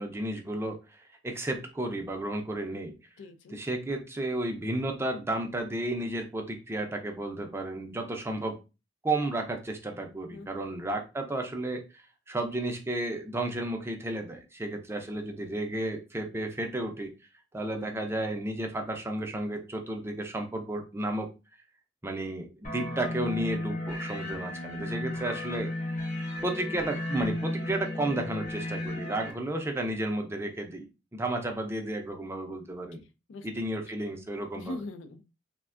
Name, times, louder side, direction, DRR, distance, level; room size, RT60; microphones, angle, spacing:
voice 1, 0.0-2.9 3.5-8.6 9.0-11.8 12.3-17.1 17.5-21.3 22.0-25.7 26.4-33.0 33.4-34.8, right 1 dB, 15° right, 4 dB, 0.4 m, -32 dB
voice 2, 3.2-3.6 10.3-10.7 17.8-18.1 26.7-26.8 33.3-33.5 34.5-35.2, left 2 dB, 90° left, 9 dB, 0.4 m, -41 dB
sound 1, 22.6-29.3, left 1 dB, 40° left, 0.7 m, -34 dB
3.4 x 2.1 x 2.4 m, 0.29 s
head